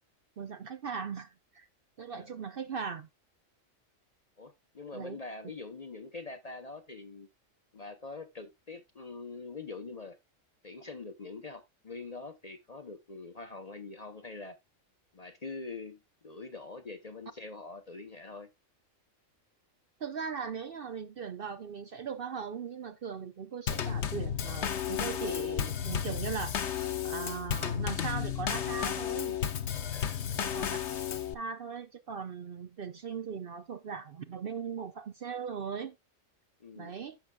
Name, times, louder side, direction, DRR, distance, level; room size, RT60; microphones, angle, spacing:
voice 1, 0.4-1.7 2.0-3.1 4.9-5.2 20.0-29.4 30.4-30.8 31.3-36.0 36.8-37.2, right 6 dB, 55° right, 0.7 m, -39 dB
voice 2, 4.4-7.3 7.7-10.2 10.6-14.6 15.1-18.5 29.9-30.4 36.6-36.9, left 3 dB, 35° left, 0.7 m, -44 dB
Drum kit / Snare drum / Bass drum, 23.7-31.3, left 9 dB, 60° left, 1.1 m, -33 dB
15.0 x 5.9 x 2.3 m
omnidirectional pair, 1.4 m